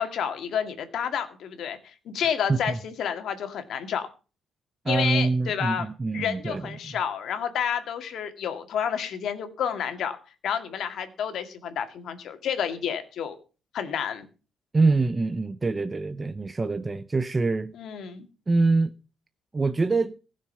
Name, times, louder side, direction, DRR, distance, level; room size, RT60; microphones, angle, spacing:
voice 1, 0.0-4.1 4.9-5.9 6.1-10.2 10.4-13.3 13.7-14.3 17.7-18.3, left 8 dB, 70° left, 2.1 m, -30 dB
voice 2, 4.8-7.0 14.7-17.7 18.5-18.9 19.5-20.2, right 3 dB, 25° right, 0.8 m, -25 dB
15.5 x 6.6 x 6.9 m
cardioid pair, 90°, 0 cm